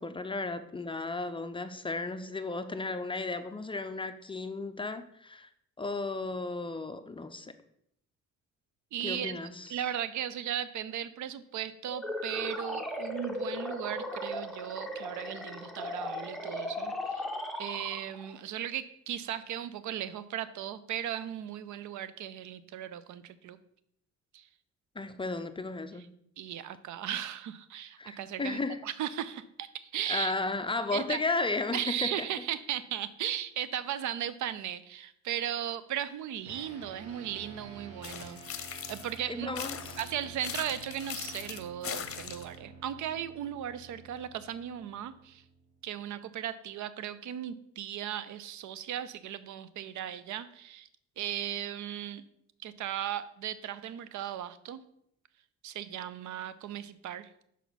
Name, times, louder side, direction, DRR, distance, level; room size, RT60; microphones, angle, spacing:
voice 1, 0.0-5.5 5.8-7.6 9.0-9.8 25.0-26.1 28.0-28.8 30.1-32.3 39.3-39.8, left 3 dB, 15° left, 10 dB, 0.5 m, -34 dB
voice 2, 8.9-9.4 9.7-17.3 17.6-23.6 24.3-24.5 26.4-30.3 30.9-31.2 31.7-38.4 38.9-39.6 40.0-45.4 45.8-50.9 51.2-52.2 52.6-54.8 55.6-57.3, right 10 dB, 70° right, 15 dB, 0.6 m, -37 dB
sound 1, 11.9-18.4, left 1 dB, ahead, 0.9 m, -37 dB
sound 2, 36.4-46.1, right 4 dB, 55° right, 2.1 m, -50 dB
sound 3, 38.0-39.2 39.6-42.6, left 8 dB, 50° left, 0.7 m, -40 dB
6.0 x 5.7 x 4.0 m, 0.73 s
cardioid pair, 90°, 30 cm